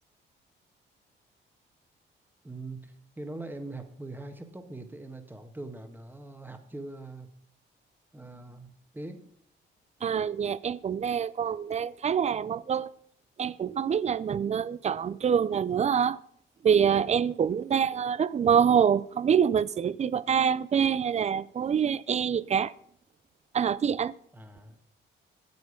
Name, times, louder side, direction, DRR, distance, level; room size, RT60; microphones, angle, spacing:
voice 1, 2.4-7.3 8.1-9.2 24.3-24.8, right 2 dB, 10° right, 1.5 m, -42 dB
voice 2, 10.0-12.9 13.4-16.2 16.6-22.7 23.5-24.1, right 7 dB, 35° right, 0.4 m, -25 dB
9.5 x 8.0 x 5.1 m
cardioid pair, 90°, 20 cm